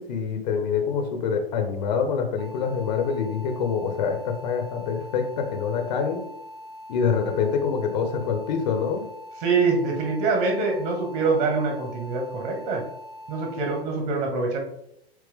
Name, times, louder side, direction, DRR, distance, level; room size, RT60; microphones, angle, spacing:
voice 1, 0.0-6.2 6.9-9.1, left 6 dB, 40° left, 5 dB, 1.1 m, -26 dB
sound 1, 2.4-13.8, left 1 dB, 65° right, 1.4 m, -42 dB
voice 2, 9.4-12.8 13.3-14.6, right 4 dB, 35° right, 2 dB, 1.8 m, -24 dB
8.4 x 3.2 x 3.5 m, 0.77 s
figure-of-eight pair, 110°, 32 cm